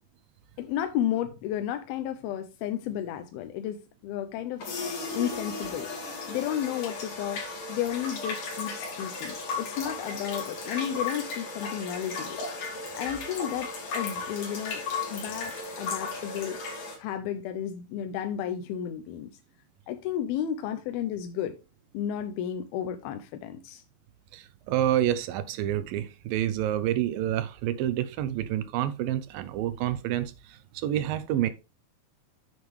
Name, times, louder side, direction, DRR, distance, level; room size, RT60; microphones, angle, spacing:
voice 1, 0.6-4.7 5.1-5.9 6.3-7.4 7.7-12.5 12.9-14.8 15.1-16.6 17.0-19.3 19.9-21.6 21.9-23.8, left 10 dB, 85° left, 2.7 m, -32 dB
sound 1, 4.6-17.0, left 4 dB, 60° left, 4.0 m, -35 dB
voice 2, 24.3-31.5, right 12 dB, 80° right, 2.4 m, -28 dB
9.5 x 7.3 x 3.3 m
omnidirectional pair, 4.3 m